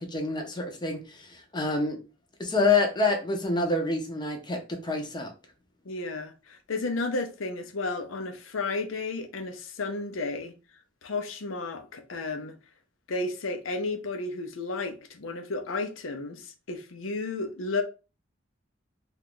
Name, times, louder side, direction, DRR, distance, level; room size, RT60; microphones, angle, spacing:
voice 1, 0.0-2.0 2.4-5.3, left 3 dB, 20° left, 0.7 m, -27 dB
voice 2, 5.9-10.5 11.0-12.6 13.1-17.8, left 3 dB, 75° left, 0.6 m, -32 dB
2.8 x 2.4 x 3.6 m
head